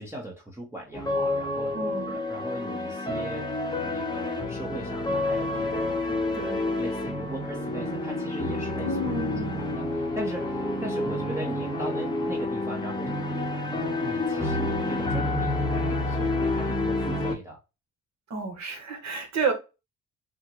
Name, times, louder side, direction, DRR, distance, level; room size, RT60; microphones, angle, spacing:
voice 1, 0.0-1.7 2.1-9.0 9.4-13.5 14.0-17.6, right 1 dB, 10° right, 0.8 m, -39 dB
sound 1, 0.9-17.4, left 2 dB, 15° left, 0.9 m, -29 dB
voice 2, 1.7-2.2 6.3-6.7 8.8-9.5 18.3-19.5, right 3 dB, 60° right, 1.1 m, -30 dB
3.5 x 2.1 x 2.9 m
cardioid pair, 90°, 30 cm